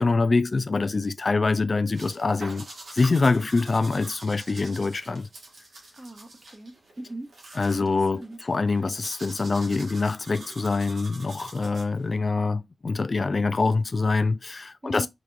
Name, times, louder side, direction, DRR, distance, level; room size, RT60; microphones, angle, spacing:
voice 1, 0.0-5.3 7.6-15.1, left 3 dB, 45° left, 0.3 m, -25 dB
sound 1, 1.9-12.2, right 2 dB, 90° right, 1.6 m, -45 dB
voice 2, 5.9-7.3 7.8-8.4 14.8-15.1, right 1 dB, 30° right, 1.1 m, -40 dB
5.0 x 3.0 x 2.5 m
wide cardioid pair, 115°, 0 cm